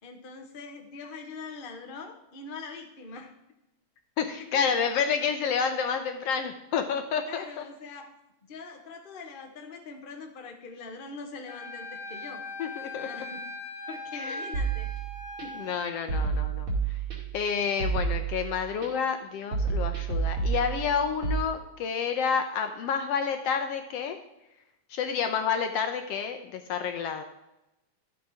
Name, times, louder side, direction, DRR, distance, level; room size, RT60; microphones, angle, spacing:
voice 1, 0.0-3.3 4.3-4.4 7.3-8.1 8.4-12.4 13.0-13.4 13.9-14.9 15.4-15.6, left 4 dB, 45° left, 3 dB, 0.6 m, -43 dB
voice 2, 4.2-7.5 12.6-13.1 14.1-14.4 15.6-16.7 17.3-24.2 24.9-27.2, left 6 dB, 70° left, 7 dB, 1.6 m, -29 dB
Wind instrument woodwind instrument, 11.5-15.8, left 2 dB, 20° right, 1.8 m, -39 dB
sound 1, 14.5-15.4 16.1-17.4 17.8-18.9 19.5-21.4, right 5 dB, 45° right, 3.3 m, -29 dB
12.5 x 7.6 x 4.8 m, 0.91 s
omnidirectional pair, 3.4 m